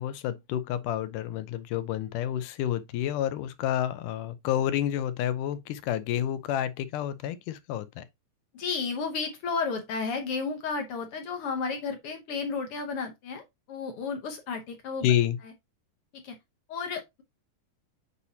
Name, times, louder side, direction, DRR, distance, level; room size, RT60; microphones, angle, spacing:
voice 1, 0.0-8.1 15.0-15.4, left 11 dB, 90° left, 2.3 m, -29 dB
voice 2, 8.5-15.1 16.1-16.3 16.7-17.2, left 5 dB, 65° left, 1.4 m, -33 dB
8.1 x 4.1 x 2.8 m
omnidirectional pair, 3.6 m